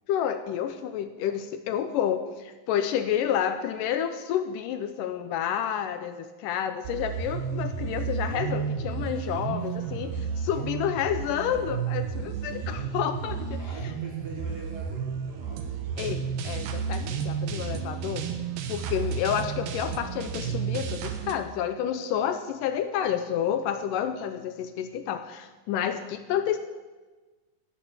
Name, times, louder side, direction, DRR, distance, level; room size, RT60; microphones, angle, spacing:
voice 1, 0.1-10.1 10.4-13.6 16.0-18.3 18.7-26.6, left 9 dB, 80° left, 9 dB, 2.1 m, -29 dB
sound 1, 6.8-21.3, right 6 dB, 85° right, 2.8 m, -32 dB
voice 2, 9.6-10.2 12.4-12.6 13.6-16.1, right 3 dB, 35° right, -2 dB, 1.8 m, -45 dB
17.5 x 7.1 x 7.1 m, 1.3 s
omnidirectional pair, 4.1 m